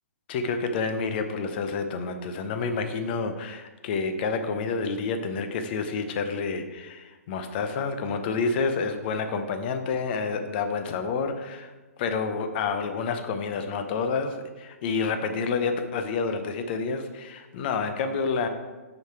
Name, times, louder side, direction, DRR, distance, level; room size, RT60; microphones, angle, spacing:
voice 1, 0.3-11.7 12.0-18.5, left 4 dB, 40° left, 7 dB, 0.7 m, -29 dB
6.3 x 5.2 x 4.5 m, 1.2 s
figure-of-eight pair, 125°, 8 cm